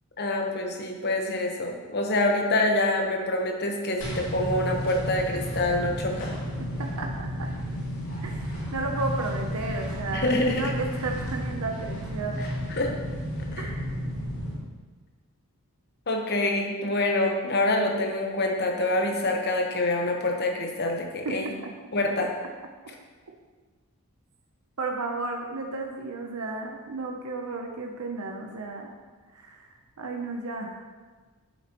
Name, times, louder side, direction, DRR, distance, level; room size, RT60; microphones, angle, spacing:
voice 1, 0.2-6.3 10.1-10.6 12.8-12.9 13.5-13.7 16.1-21.5 21.9-22.3, left 2 dB, 45° left, 1 dB, 1.1 m, -26 dB
sound 1, 4.0-14.6, equal, 65° left, 2.2 m, -32 dB
voice 2, 6.8-7.5 8.2-8.4 8.7-12.5 13.6-13.8 21.2-21.4 24.8-28.9 29.3-29.7 30.0-30.9, right 3 dB, 85° right, 2 dB, 0.8 m, -33 dB
8.3 x 8.1 x 3.0 m, 1.4 s
head